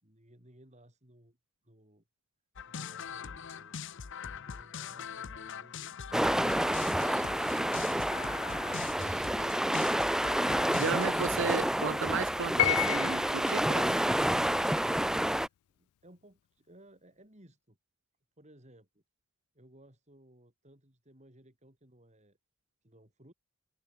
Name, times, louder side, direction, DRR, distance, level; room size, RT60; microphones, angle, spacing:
voice 1, 0.0-1.4 1.6-2.0 2.6-3.8 4.3-6.7 14.8-17.8 18.4-19.0 19.5-22.4 22.8-23.3, right 1 dB, 30° right, 5.0 m, -59 dB
sound 1, 2.6-11.6, left 7 dB, 55° left, 0.7 m, -42 dB
sound 2, 6.1-15.5, right 1 dB, ahead, 0.3 m, -29 dB
voice 2, 10.8-14.0, right 5 dB, 60° right, 0.7 m, -34 dB
Piano, 12.6-13.5, left 15 dB, 90° left, 0.3 m, -29 dB
head